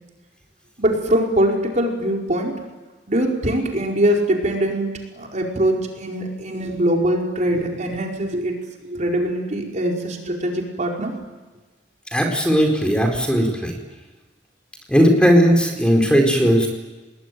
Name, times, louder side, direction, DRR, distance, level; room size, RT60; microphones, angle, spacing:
voice 1, 0.8-2.5 3.1-4.9 5.1-8.6 8.8-11.1, right 1 dB, 45° right, 0 dB, 4.7 m, -22 dB
voice 2, 12.1-13.7 14.9-16.7, equal, 5° left, 2 dB, 4.3 m, -17 dB
29.0 x 20.5 x 9.3 m, 1.2 s
head